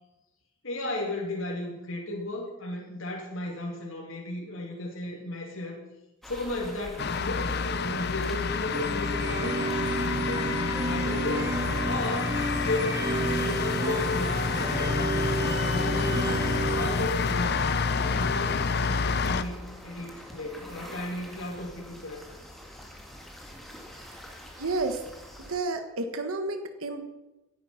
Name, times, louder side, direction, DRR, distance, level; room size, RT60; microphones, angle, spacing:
voice 1, 0.6-5.8 6.2-9.6 10.1-10.6 10.9-11.6 11.9-15.2 15.7-22.4, left 1 dB, 70° left, -1 dB, 2.7 m, -35 dB
sound 1, 6.2-25.6, equal, ahead, 2.0 m, -46 dB
sound 2, 7.0-19.4, left 5 dB, 50° left, 0.6 m, -28 dB
sound 3, 8.7-16.9, right 2 dB, 20° right, 1.9 m, -31 dB
voice 2, 24.6-25.0 25.4-27.0, right 3 dB, 80° right, 7 dB, 1.3 m, -31 dB
16.5 x 10.0 x 5.7 m, 1.0 s
head